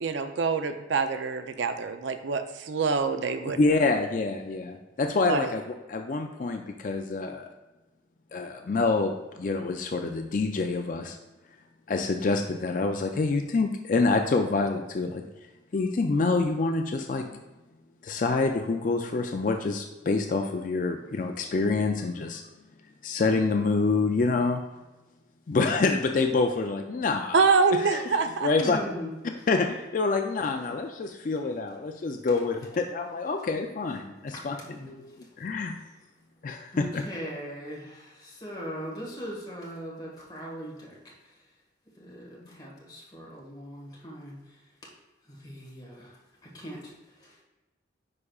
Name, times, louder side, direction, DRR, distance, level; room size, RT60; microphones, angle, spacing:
voice 1, 0.0-3.6 5.3-5.5 27.3-28.5, right 4 dB, 75° right, 8 dB, 0.5 m, -25 dB
voice 2, 3.6-5.6 5.9-7.5 8.3-11.2 11.9-15.2 15.7-17.4 18.0-22.4 23.0-24.6 25.5-27.4 27.7-28.0 28.4-28.8 29.5-34.6 34.8-35.8 36.4-37.0, left 3 dB, 45° left, 4 dB, 0.4 m, -27 dB
voice 3, 28.6-29.1 34.3-35.0 36.7-41.4 42.0-44.9 45.2-47.4, equal, 20° left, -3 dB, 1.5 m, -40 dB
9.6 x 4.8 x 2.4 m, 1.1 s
head